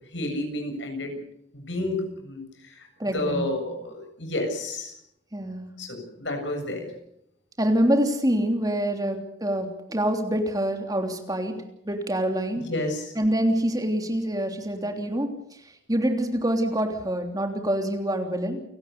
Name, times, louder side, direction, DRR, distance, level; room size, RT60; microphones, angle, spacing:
voice 1, 0.1-1.2 1.5-4.9 5.8-6.9 12.7-13.1, left 1 dB, 80° left, 5 dB, 7.4 m, -31 dB
voice 2, 3.0-3.4 5.3-5.7 7.6-11.6 11.8-12.7 13.1-15.6 15.9-18.6, right 1 dB, 20° right, 4 dB, 3.3 m, -26 dB
29.5 x 17.5 x 7.0 m, 0.75 s
head